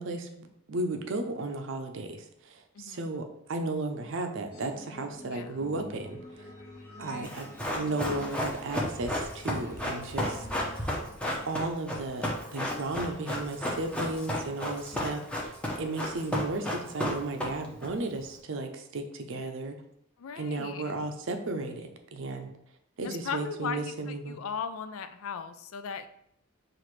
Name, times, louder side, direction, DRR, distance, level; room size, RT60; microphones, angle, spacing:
voice 1, 0.0-6.2 7.0-11.0 11.4-15.5 15.8-19.8 20.4-22.5 23.0-24.4, right 2 dB, 65° right, 6 dB, 0.5 m, -34 dB
voice 2, 2.7-3.1 5.3-5.6 7.0-7.3 14.9-15.3 20.2-21.0 23.0-26.1, left 6 dB, 75° left, 9 dB, 0.4 m, -38 dB
sound 1, 4.5-11.3, left 1 dB, 50° left, 1.0 m, -48 dB
Run, 7.2-17.9 18.1-18.2, left 1 dB, 5° left, 0.7 m, -32 dB
5.8 x 2.5 x 3.1 m, 0.73 s
head